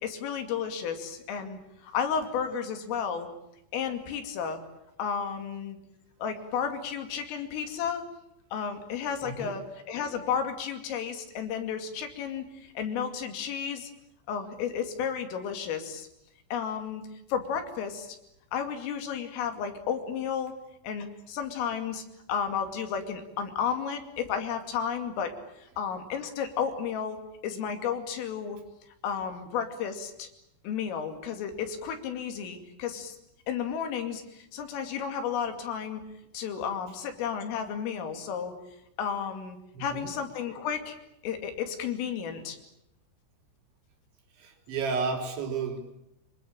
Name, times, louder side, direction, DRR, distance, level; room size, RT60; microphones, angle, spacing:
voice 1, 0.0-3.3 3.7-4.6 5.0-5.8 6.2-8.0 8.5-13.9 14.3-16.1 16.5-17.0 17.3-18.2 18.5-20.5 20.8-22.0 22.3-28.6 29.0-30.3 30.6-33.2 33.5-36.0 36.3-38.5 39.0-41.0 41.2-42.6, left 7 dB, 80° left, 6 dB, 5.1 m, -32 dB
voice 2, 9.2-9.6 39.7-40.1 44.4-45.8, right 5 dB, 65° right, 3 dB, 5.8 m, -32 dB
25.5 x 23.5 x 8.8 m, 0.81 s
omnidirectional pair, 5.8 m